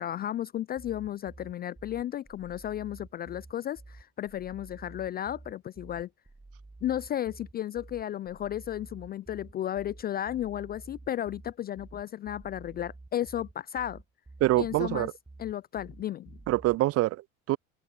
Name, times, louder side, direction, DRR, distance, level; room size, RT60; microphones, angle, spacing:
voice 1, 0.0-6.1 6.8-14.0 14.6-15.1 15.4-16.4, left 11 dB, 25° left, 0.3 m, -34 dB
sound 1, 0.8-16.8, right 2 dB, 10° right, 7.6 m, -50 dB
voice 2, 14.4-15.1 16.5-17.6, right 17 dB, 35° right, 0.5 m, -25 dB
open air
hypercardioid pair, 70°, 42 cm